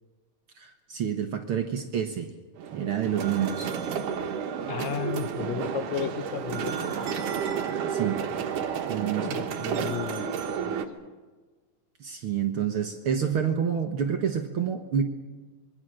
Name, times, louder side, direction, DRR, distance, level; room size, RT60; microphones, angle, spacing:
voice 1, 0.6-2.3 2.7-3.7 7.9-8.2 8.9-9.3 12.0-15.0, right 8 dB, 55° right, 6 dB, 1.7 m, -28 dB
sound 1, 2.6-10.9, right 7 dB, 90° right, 3.1 m, -31 dB
voice 2, 4.7-7.2 9.1-10.8, left 8 dB, 70° left, 10 dB, 2.1 m, -34 dB
26.0 x 23.0 x 6.4 m, 1.3 s
omnidirectional pair, 3.6 m